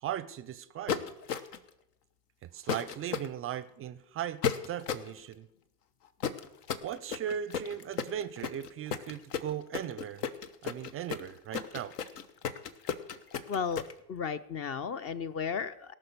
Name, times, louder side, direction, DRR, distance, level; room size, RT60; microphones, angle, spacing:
voice 1, 0.0-1.0 2.4-4.4 4.7-5.5 6.8-10.2 10.6-11.9, right 10 dB, 30° right, 17 dB, 0.5 m, -38 dB
sound 1, 0.9-1.7 2.7-3.3 4.4-5.1 6.2-13.9, left 8 dB, 70° left, 1.1 m, -34 dB
voice 2, 13.5-13.8 14.1-15.9, left 6 dB, 30° left, 15 dB, 0.5 m, -34 dB
18.0 x 6.1 x 6.7 m, 0.83 s
hypercardioid pair, 85°, 49 cm